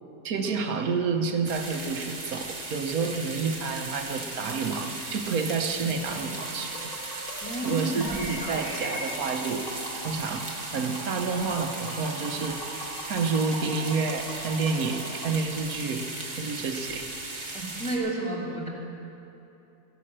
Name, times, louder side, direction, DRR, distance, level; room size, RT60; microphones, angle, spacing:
voice 1, 0.2-6.8 7.6-9.7 10.0-16.1 16.4-17.1, right 4 dB, 80° right, 5 dB, 1.3 m, -29 dB
sound 1, 1.4-18.0, right 2 dB, 50° right, 2.1 m, -37 dB
Tap, 6.2-15.3, equal, 70° left, 4.2 m, -41 dB
voice 2, 7.4-8.6 17.5-18.7, right 2 dB, 5° left, -6 dB, 2.7 m, -31 dB
sound 2, 7.8-11.5, left 1 dB, 45° left, 3.8 m, -41 dB
14.5 x 11.0 x 7.5 m, 3.0 s
omnidirectional pair, 1.5 m